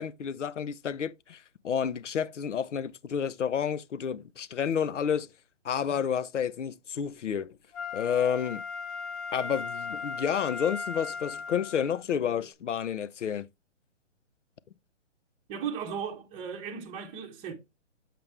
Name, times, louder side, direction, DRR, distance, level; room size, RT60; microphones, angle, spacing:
voice 1, 0.0-5.3 5.6-7.6 7.9-8.6 9.3-13.5, left 8 dB, 75° left, 0.8 m, -30 dB
Wind instrument woodwind instrument, 7.7-12.0 12.5-12.6, left 5 dB, 25° left, 1.1 m, -37 dB
voice 2, 15.5-17.5, right 7 dB, 15° right, 0.9 m, -36 dB
7.7 x 5.2 x 3.2 m
hypercardioid pair, 150°, 37 cm